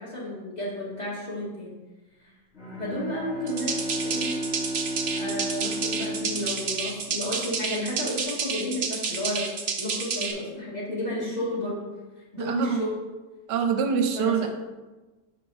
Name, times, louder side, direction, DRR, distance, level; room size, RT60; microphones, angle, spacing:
voice 1, 0.0-1.7 2.8-4.3 5.2-9.5 9.8-11.8 12.3-13.0 14.1-14.5, left 1 dB, 25° left, -6 dB, 2.0 m, -32 dB
Bowed string instrument, 2.5-7.5, right 1 dB, 40° left, 1.7 m, -33 dB
sound 1, 3.5-10.3, right 5 dB, 55° right, 0.9 m, -30 dB
voice 2, 12.4-12.8 13.5-14.5, right 6 dB, 85° right, 5 dB, 1.3 m, -25 dB
6.4 x 4.1 x 4.7 m, 1.2 s
omnidirectional pair, 1.8 m